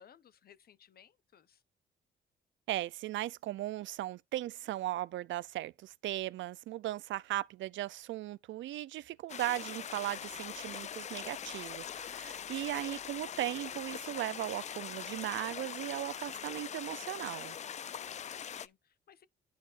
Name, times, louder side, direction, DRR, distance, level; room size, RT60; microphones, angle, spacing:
voice 1, 0.0-1.6 17.9-19.3, left 8 dB, 50° left, 0.8 m, -61 dB
voice 2, 2.7-17.6, right 15 dB, 70° right, 0.5 m, -37 dB
sound 1, 9.3-18.7, left 8 dB, 35° left, 0.4 m, -42 dB
11.0 x 4.7 x 2.5 m
cardioid pair, 90°, 20 cm